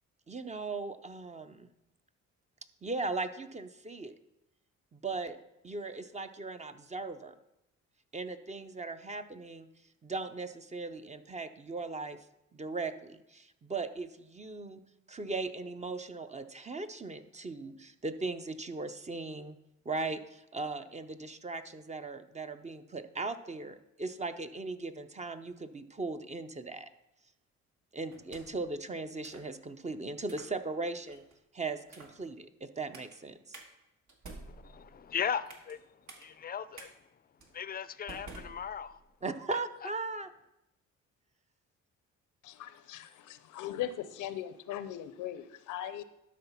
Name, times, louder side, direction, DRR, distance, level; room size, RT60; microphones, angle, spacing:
voice 1, 0.3-1.7 2.8-4.1 4.9-5.4 5.6-7.3 8.1-9.7 10.0-12.2 12.5-14.8 15.1-19.6 19.9-26.9 27.9-31.2 31.5-33.6 39.2-40.3, right 3 dB, 25° right, 9 dB, 0.6 m, -38 dB
sound 1, 28.1-28.7 29.2-29.5 30.2-30.5 31.1-31.4 31.9-32.2 32.9-33.2 33.5-33.7 34.1-35.8 36.1-36.2 36.8-36.9 37.4-37.6 38.1-39.1, right 3 dB, 65° right, 1.8 m, -50 dB
voice 2, 34.5-37.0 37.5-39.0 39.8-39.9, left 7 dB, 30° left, 15 dB, 0.4 m, -38 dB
voice 3, 42.4-46.0, left 11 dB, 80° left, 13 dB, 0.6 m, -39 dB
12.0 x 4.0 x 5.7 m, 0.88 s
cardioid pair, 90°, 30 cm